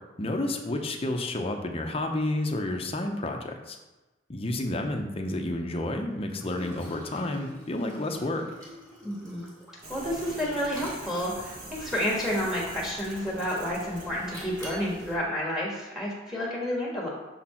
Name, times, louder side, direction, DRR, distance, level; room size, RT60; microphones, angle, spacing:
voice 1, 0.2-3.8 4.3-8.4, left 1 dB, 30° left, 3 dB, 0.7 m, -30 dB
Liquid, 6.3-11.3 11.8-12.5 13.1-13.6 14.3-14.9, equal, 20° right, 2.3 m, -45 dB
voice 2, 9.0-9.5 9.9-17.1, equal, ahead, -4 dB, 1.5 m, -30 dB
sound 1, 9.8-15.2, right 1 dB, 45° right, 1.3 m, -44 dB
6.7 x 4.3 x 4.3 m, 1.1 s
head